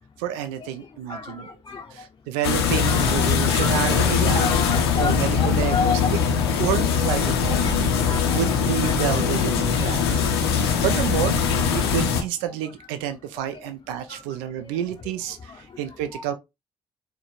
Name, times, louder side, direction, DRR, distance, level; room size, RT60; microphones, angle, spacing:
voice 1, 0.2-1.5 2.3-4.5 5.0-6.2 6.6-7.9 8.3-10.2 10.8-11.3 11.7-16.3, right 10 dB, 80° right, 0.4 m, -29 dB
voice 2, 1.1-1.9 2.8-6.0 7.1-8.5 8.8-9.3 10.7-11.1 11.6-11.9 14.1-14.2 14.6-14.7 15.5-15.6 16.1-16.2, left 5 dB, 35° left, 0.5 m, -32 dB
sound 1, 2.4-12.2, left 6 dB, 90° left, 0.5 m, -21 dB
4.4 x 2.2 x 2.9 m
hypercardioid pair, 45°, 13 cm